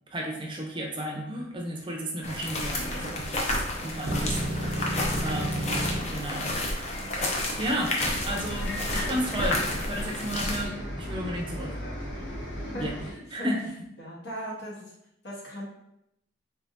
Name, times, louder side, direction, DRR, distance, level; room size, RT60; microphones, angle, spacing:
voice 1, 0.1-3.3 3.8-4.9 5.2-5.7 6.1-6.5 7.6-7.9 8.3-11.8 12.8-12.9 13.3-13.6, equal, 25° right, 0 dB, 0.6 m, -33 dB
sound 1, 2.2-10.6, left 1 dB, 35° left, 0.6 m, -31 dB
sound 2, 4.1-6.0, right 1 dB, 80° right, 0.7 m, -31 dB
Bus, 8.0-13.1, equal, 80° left, 1.0 m, -36 dB
voice 2, 12.7-13.5 14.0-14.9 15.2-15.6, equal, 60° left, -4 dB, 1.2 m, -38 dB
3.8 x 3.4 x 2.6 m, 0.80 s
head